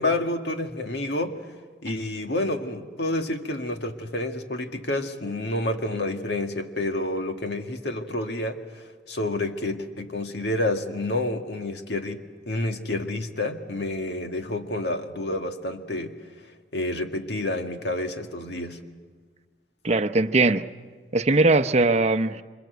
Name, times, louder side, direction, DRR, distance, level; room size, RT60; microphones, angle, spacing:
voice 1, 0.0-1.5 1.8-16.5 16.7-18.8, left 2 dB, 70° left, 1.9 m, -29 dB
voice 2, 19.8-20.6 21.1-22.4, right 3 dB, 40° right, 0.8 m, -20 dB
27.0 x 26.5 x 8.0 m
head